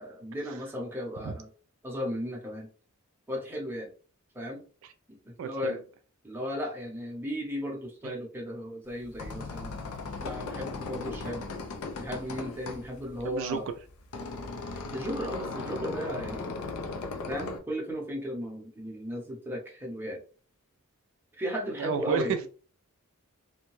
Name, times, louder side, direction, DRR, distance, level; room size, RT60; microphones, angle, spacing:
voice 1, 0.0-1.5 1.8-2.7 3.3-3.9 4.3-4.6 5.1-5.8 6.2-9.9 10.2-11.5 12.0-13.7 14.9-16.6 17.3-20.2 21.4-22.3, equal, 10° right, -1 dB, 0.7 m, -35 dB
voice 2, 5.4-5.8 13.2-13.6 21.8-22.5, right 6 dB, 60° right, 8 dB, 0.3 m, -31 dB
sound 1, 8.9-17.6, left 3 dB, 80° left, 0.5 m, -38 dB
2.7 x 2.2 x 3.0 m, 0.40 s
head